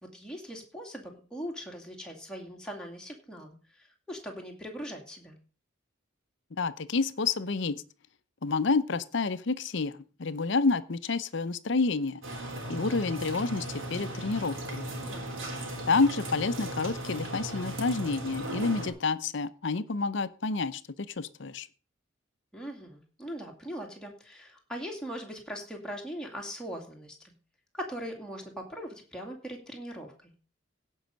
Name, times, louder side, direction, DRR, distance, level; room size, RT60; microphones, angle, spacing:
voice 1, 0.0-5.4 15.0-15.2 22.5-27.3 27.7-30.3, equal, 5° left, 0 dB, 2.3 m, -40 dB
voice 2, 6.6-7.8 8.4-12.2 12.7-14.9 15.9-20.8 21.2-21.7, left 4 dB, 60° left, 15 dB, 0.7 m, -29 dB
sound 1, 12.2-18.9, right 1 dB, 70° right, 3.7 m, -37 dB
16.5 x 5.5 x 5.3 m, 0.37 s
head